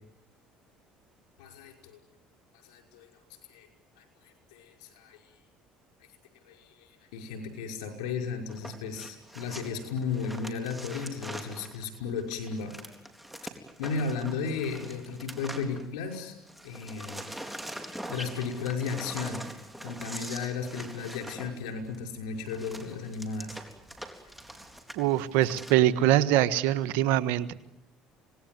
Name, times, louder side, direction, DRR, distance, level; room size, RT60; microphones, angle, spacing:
voice 1, 1.4-2.0 2.6-3.1 3.5-3.7 4.0-5.2 6.5-12.7 13.8-16.4 16.6-17.3 18.1-19.4 19.8-23.6, left 5 dB, 90° left, 4 dB, 5.8 m, -35 dB
sound 1, 8.5-16.2 16.5-25.7, right 1 dB, 5° right, 3.9 m, -43 dB
voice 2, 25.0-27.5, right 13 dB, 80° right, 12 dB, 1.4 m, -23 dB
27.0 x 19.0 x 9.5 m, 0.80 s
supercardioid pair, 85°, 3 cm